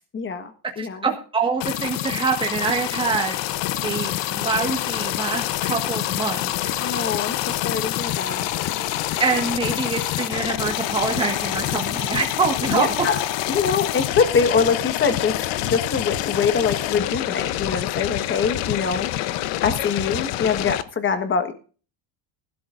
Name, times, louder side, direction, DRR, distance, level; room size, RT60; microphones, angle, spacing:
voice 1, 0.1-1.0 6.8-8.5 12.7-13.2 13.5-19.1 19.6-21.5, left 5 dB, 25° left, 10 dB, 1.4 m, -24 dB
voice 2, 0.8-3.4 3.8-6.5 9.2-12.9, right 4 dB, 10° right, 2 dB, 1.6 m, -25 dB
sound 1, 1.6-20.8, left 14 dB, 70° left, 0.9 m, -26 dB
19.5 x 12.0 x 2.6 m, 0.38 s
cardioid pair, 155°, 46 cm